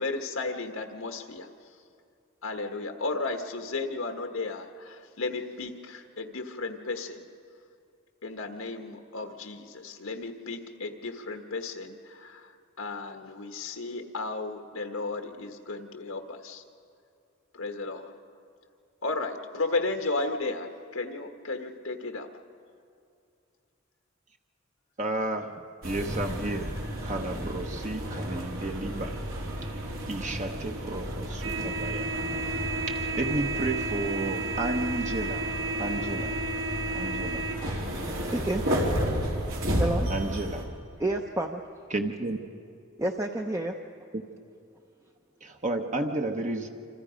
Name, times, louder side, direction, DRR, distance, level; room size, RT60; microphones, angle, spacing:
voice 1, 0.0-1.5 2.4-7.3 8.2-16.6 17.5-18.1 19.0-22.3, left 3 dB, 85° left, 4 dB, 1.4 m, -34 dB
voice 2, 25.0-26.7 27.0-29.2 29.6-29.7 30.1-32.2 32.9-35.5 35.8-36.4 36.9-37.5 40.1-40.7 41.9-42.4 44.1-44.2 45.4-46.7, right 2 dB, 35° right, 3 dB, 1.0 m, -32 dB
sound 1, 25.8-40.6, right 1 dB, 75° right, 3.8 m, -31 dB
voice 3, 38.3-38.6 39.8-40.1 41.0-41.6 43.0-43.8, right 1 dB, 15° right, 3 dB, 0.7 m, -29 dB
27.5 x 26.5 x 5.1 m, 2.5 s
head